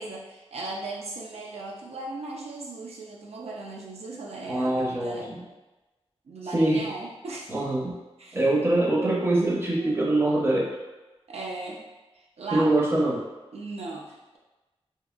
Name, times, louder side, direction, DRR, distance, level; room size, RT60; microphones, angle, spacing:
voice 1, 0.0-5.3 6.3-7.5 8.2-8.4 9.8-10.0 11.3-11.9 12.1-12.7 13.5-14.4, right 3 dB, 75° right, -3 dB, 0.4 m, -37 dB
voice 2, 4.5-5.4 6.5-6.9 7.5-8.0 8.3-10.8 12.5-13.3, right 2 dB, 25° right, -4 dB, 0.5 m, -24 dB
2.8 x 2.4 x 2.3 m, 1.1 s
wide cardioid pair, 115°, 11 cm